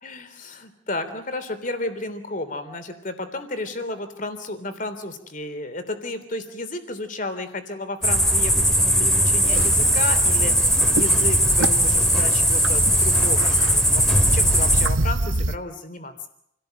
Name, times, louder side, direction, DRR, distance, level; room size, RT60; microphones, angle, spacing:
voice 1, 0.0-10.7 10.9-14.0 14.3-16.1, left 2 dB, 45° left, 10 dB, 3.4 m, -32 dB
sound 1, 8.0-14.9, equal, ahead, 2.0 m, -19 dB
sound 2, 9.4-15.6, right 2 dB, 85° right, 1.1 m, -28 dB
29.0 x 18.0 x 7.9 m, 0.73 s
head